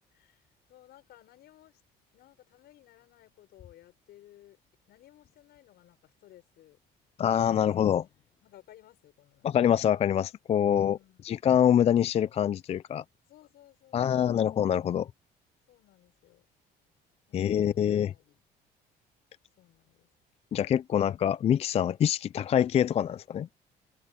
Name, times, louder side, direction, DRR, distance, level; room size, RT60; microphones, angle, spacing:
voice 1, 0.0-1.8 2.1-4.6 4.9-6.8 7.5-9.5 10.6-11.4 13.2-14.5 15.7-16.5 17.3-18.4 19.6-20.1, left 14 dB, 75° left, 6.0 m, -58 dB
voice 2, 7.2-8.0 9.4-11.0 11.2-13.0 13.9-15.1 17.3-18.1 20.5-23.5, left 9 dB, 40° left, 0.4 m, -25 dB
cardioid pair, 110°, 17 cm